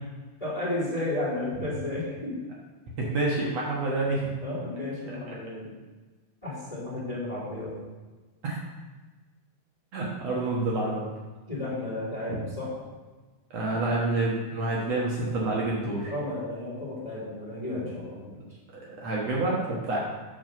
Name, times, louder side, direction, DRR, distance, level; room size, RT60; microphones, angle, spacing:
voice 1, 0.4-2.4 4.4-5.7 6.4-7.8 11.5-12.8 16.1-18.3, left 2 dB, 10° left, -6 dB, 2.4 m, -33 dB
voice 2, 3.0-4.3 5.3-5.4 8.4-8.6 9.9-11.0 13.5-16.1 18.9-20.0, right 2 dB, 60° right, -4 dB, 2.3 m, -28 dB
7.9 x 5.0 x 6.6 m, 1.3 s
omnidirectional pair, 3.5 m